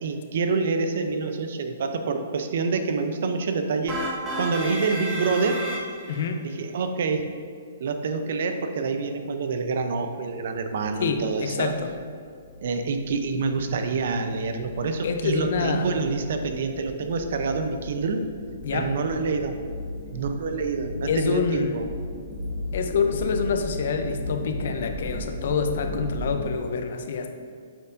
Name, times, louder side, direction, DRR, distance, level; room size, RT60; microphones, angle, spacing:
voice 1, 0.0-4.0 4.4-5.6 6.4-7.2 7.8-11.7 12.6-18.2 18.7-19.6 20.1-21.8, right 4 dB, 65° right, 7 dB, 0.6 m, -27 dB
sound 1, 3.9-6.3, right 1 dB, 25° right, 1.1 m, -31 dB
voice 2, 6.1-6.4 11.0-11.9 15.0-16.0 18.6-18.9 21.1-21.8 22.7-27.4, left 5 dB, 65° left, 6 dB, 0.6 m, -26 dB
sound 2, 11.4-26.5, left 1 dB, 45° left, 1.3 m, -37 dB
8.4 x 4.5 x 2.6 m, 2.1 s
hypercardioid pair, 140°, 0 cm